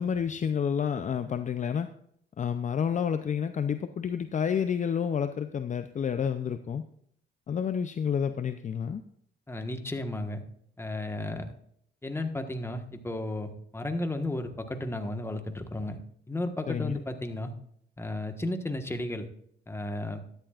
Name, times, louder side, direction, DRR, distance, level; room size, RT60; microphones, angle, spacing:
voice 1, 0.0-1.9 2.4-6.9 7.5-9.0 16.7-17.0, left 7 dB, 40° left, 9 dB, 0.6 m, -29 dB
voice 2, 9.5-10.4 10.8-11.5 12.0-16.0 16.3-17.5 18.0-19.3 19.7-20.2, left 1 dB, 10° left, 6 dB, 1.4 m, -33 dB
12.5 x 10.5 x 2.5 m, 0.68 s
cardioid pair, 90°, 20 cm